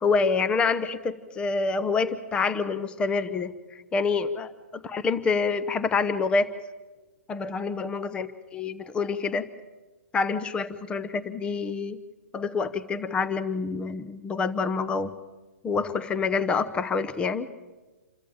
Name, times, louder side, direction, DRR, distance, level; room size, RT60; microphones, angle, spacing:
voice 1, 0.0-3.5 3.9-6.5 7.3-9.5 10.1-12.0 12.3-15.1 15.6-17.5, left 4 dB, 15° left, 16 dB, 0.8 m, -27 dB
27.5 x 14.0 x 8.8 m, 1.2 s
hypercardioid pair, 140°, 8 cm